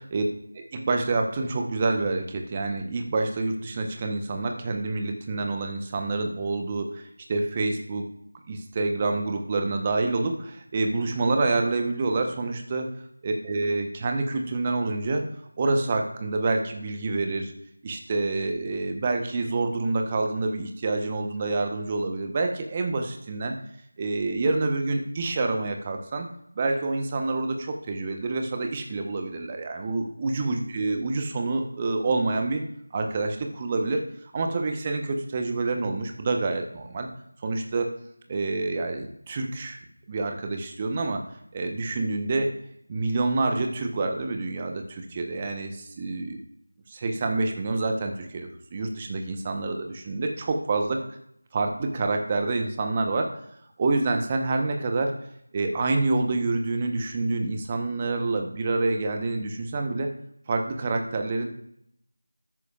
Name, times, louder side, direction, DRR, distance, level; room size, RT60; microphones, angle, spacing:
voice 1, 0.5-8.0 8.5-12.9 13.2-15.2 15.6-17.5 17.8-23.5 24.0-26.3 26.5-32.6 32.9-34.0 34.3-37.1 37.4-37.9 38.3-39.8 40.1-41.2 41.5-42.5 42.9-45.7 46.0-46.4 46.9-51.0 51.5-53.3 53.8-55.1 55.5-60.1 60.5-61.5, right 3 dB, 20° right, 4 dB, 1.0 m, -27 dB
13.5 x 11.0 x 2.4 m, 0.73 s
figure-of-eight pair, 170°, 0 cm